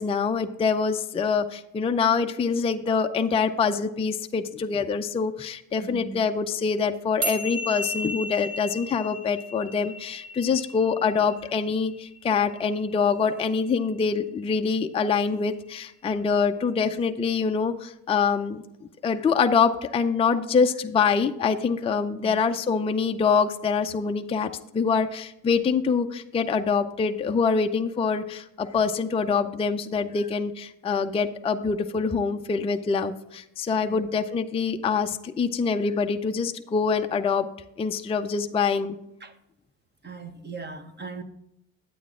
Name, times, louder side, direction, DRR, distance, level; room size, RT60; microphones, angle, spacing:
voice 1, 0.0-18.6 19.0-37.5 37.8-39.0, left 5 dB, 15° left, 0.4 m, -25 dB
voice 2, 5.8-6.2 22.2-22.3 33.9-34.1 39.2-39.3 40.0-41.2, right 4 dB, 25° right, 1.0 m, -39 dB
sound 1, 7.2-13.8, left 1 dB, 40° right, 2.1 m, -35 dB
9.2 x 8.4 x 3.7 m
supercardioid pair, 90°, 45 cm